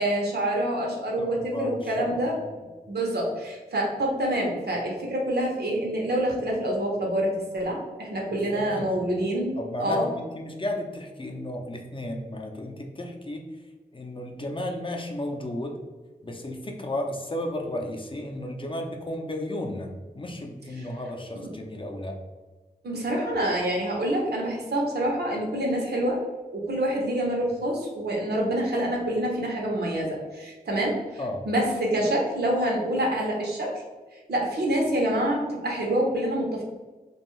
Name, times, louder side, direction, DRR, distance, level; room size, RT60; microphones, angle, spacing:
voice 1, 0.0-2.3 2.9-10.1 22.8-26.2 26.5-31.0 31.5-33.7 34.3-36.6, right 1 dB, 85° right, -2 dB, 0.7 m, -26 dB
voice 2, 1.2-2.6 8.3-8.9 9.6-13.5 13.9-15.8 16.2-22.2 31.2-31.4, left 1 dB, 30° left, 2 dB, 0.5 m, -34 dB
2.6 x 2.3 x 3.0 m, 1.3 s
wide cardioid pair, 55°, 16 cm